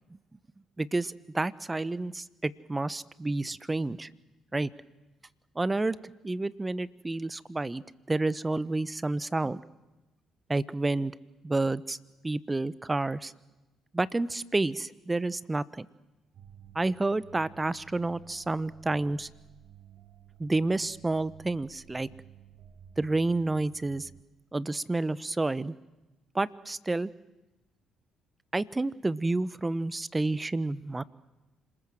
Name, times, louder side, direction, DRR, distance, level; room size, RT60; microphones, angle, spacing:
voice 1, 0.8-4.1 4.5-4.7 5.6-9.6 10.5-11.1 11.4-12.0 12.2-13.3 13.9-15.9 16.7-19.3 20.4-22.1 23.0-24.1 24.5-25.7 26.3-27.1 28.5-31.0, right 2 dB, 20° right, 18 dB, 1.0 m, -29 dB
sound 1, 16.3-24.2, right 10 dB, 60° right, 1.9 m, -54 dB
27.0 x 20.5 x 7.8 m, 1.0 s
hypercardioid pair, 55°, 0 cm